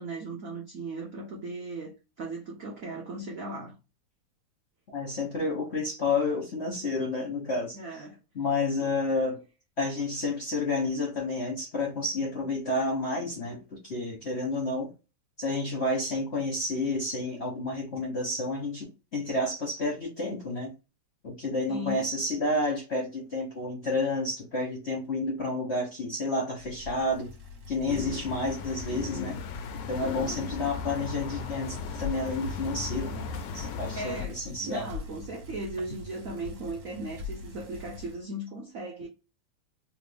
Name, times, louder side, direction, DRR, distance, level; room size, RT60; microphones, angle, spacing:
voice 1, 0.0-3.8 7.7-8.2 8.8-8.9 21.7-22.1 34.0-39.1, right 2 dB, 70° right, 0.7 m, -37 dB
voice 2, 4.9-8.0 8.3-9.4 9.8-14.9 15.4-20.7 21.2-27.3 27.7-29.4 29.9-33.3 33.5-34.9, left 2 dB, 50° left, 0.8 m, -30 dB
Bicycle, 26.5-38.2, left 3 dB, 50° right, 1.3 m, -43 dB
sound 1, 27.9-34.3, left 6 dB, 75° left, 1.0 m, -37 dB
3.3 x 2.6 x 3.3 m
omnidirectional pair, 2.4 m